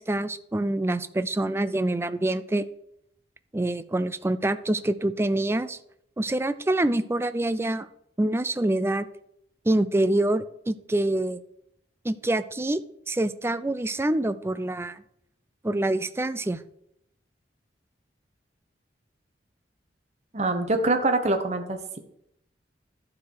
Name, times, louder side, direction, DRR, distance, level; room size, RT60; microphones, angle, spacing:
voice 1, 0.0-2.7 3.5-5.8 6.2-7.9 8.2-9.1 9.7-11.4 12.0-12.8 13.1-15.0 15.6-16.6, right 1 dB, 15° right, 13 dB, 0.4 m, -26 dB
voice 2, 20.3-22.0, right 2 dB, 35° right, 6 dB, 1.0 m, -24 dB
11.0 x 4.8 x 6.5 m, 0.76 s
head